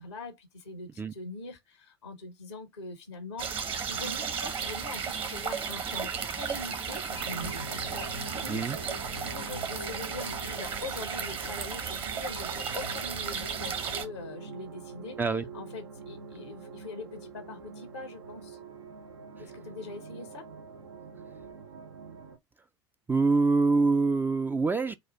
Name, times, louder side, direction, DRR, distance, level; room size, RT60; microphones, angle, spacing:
voice 1, 0.0-8.1 8.3-15.2 15.5-18.6 19.4-20.5, left 3 dB, 85° left, 0.8 m, -43 dB
sound 1, 3.4-14.1, right 6 dB, 40° right, 1.1 m, -34 dB
sound 2, 7.2-22.4, right 2 dB, 75° right, 0.7 m, -45 dB
voice 2, 23.1-25.0, right 3 dB, 15° right, 0.4 m, -25 dB
4.2 x 2.4 x 4.3 m
figure-of-eight pair, 70°, 14 cm